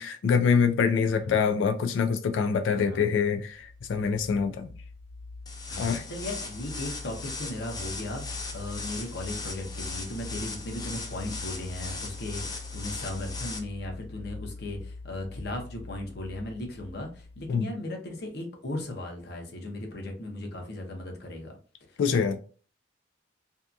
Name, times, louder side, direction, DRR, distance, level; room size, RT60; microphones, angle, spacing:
voice 1, 0.0-4.7 5.8-6.0 17.5-17.7 22.0-22.3, left 6 dB, 90° left, 0.3 m, -25 dB
voice 2, 2.7-3.1 5.7-21.5 21.9-22.4, left 1 dB, 60° left, 0.7 m, -37 dB
sound 1, 3.5-17.6, left 3 dB, 35° right, 0.5 m, -43 dB
sound 2, 5.5-13.6, left 3 dB, 20° left, 0.4 m, -39 dB
2.7 x 2.3 x 2.4 m
head